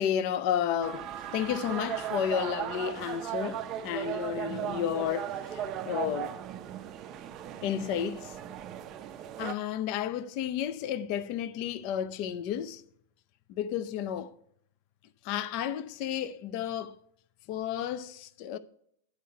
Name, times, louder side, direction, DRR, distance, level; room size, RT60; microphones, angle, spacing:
voice 1, 0.0-6.3 7.6-8.4 9.4-12.8 13.5-14.3 15.2-17.0 17.5-18.6, left 9 dB, 40° left, 0.5 m, -32 dB
sound 1, 0.8-9.5, right 10 dB, 25° right, 0.5 m, -37 dB
9.5 x 4.6 x 6.4 m
supercardioid pair, 165°, 0 cm